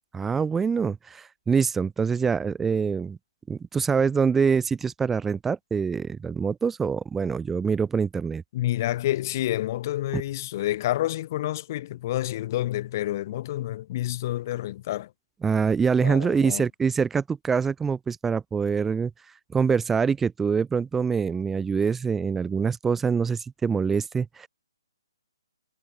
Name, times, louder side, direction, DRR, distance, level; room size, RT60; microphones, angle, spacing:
voice 1, 0.1-3.2 3.5-8.4 10.1-10.2 15.4-19.1 19.5-24.5, right 6 dB, 10° right, 0.9 m, -25 dB
voice 2, 8.5-15.1 16.0-16.7, left 14 dB, 40° left, 1.1 m, -28 dB
hypercardioid pair, 155°, 3 cm